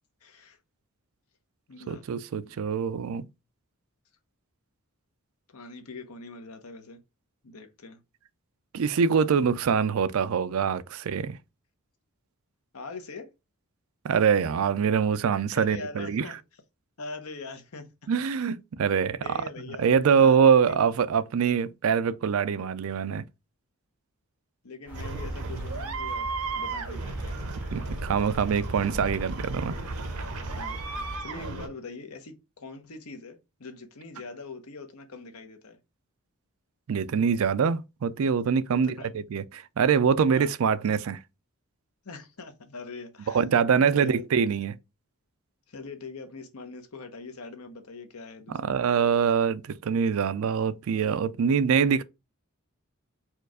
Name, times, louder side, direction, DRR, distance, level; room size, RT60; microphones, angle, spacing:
voice 1, 0.2-0.6 1.7-2.0 2.4-2.5 5.5-7.0 7.4-8.0 12.7-13.3 15.6-16.4 17.0-17.9 19.2-20.8 24.6-26.3 26.5-27.4 28.8-28.9 30.5-35.8 38.7-39.1 40.3-40.5 42.0-43.5 43.8-44.2 45.7-48.9, left 3 dB, 80° left, 0.9 m, -42 dB
voice 2, 1.9-3.3 8.7-11.4 14.0-16.2 18.1-19.2 19.8-23.2 27.7-29.8 36.9-41.2 43.3-44.8 48.5-52.0, right 6 dB, 65° right, 0.4 m, -24 dB
sound 1, 24.9-31.2, right 1 dB, 10° right, 1.5 m, -40 dB
sound 2, 24.9-31.7, right 3 dB, 85° right, 0.8 m, -35 dB
4.5 x 2.4 x 4.7 m
head